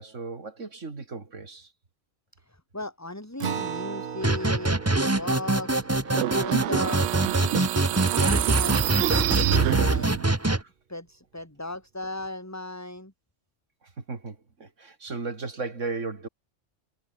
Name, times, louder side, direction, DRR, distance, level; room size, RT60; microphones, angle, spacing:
voice 1, 0.0-1.7 10.6-10.7 13.8-16.3, right 3 dB, 90° right, 3.1 m, -36 dB
voice 2, 2.5-4.8 5.1-5.9 6.3-7.2 8.1-8.9 9.5-10.1 10.4-10.6 10.9-13.1, left 2 dB, 15° left, 3.3 m, -36 dB
Acoustic guitar, 3.4-8.3, right 7 dB, 50° right, 1.1 m, -38 dB
sound 1, 4.2-10.6, right 2 dB, 15° right, 1.1 m, -24 dB
sound 2, 6.1-10.3, right 13 dB, 70° right, 0.8 m, -26 dB
omnidirectional pair, 1.2 m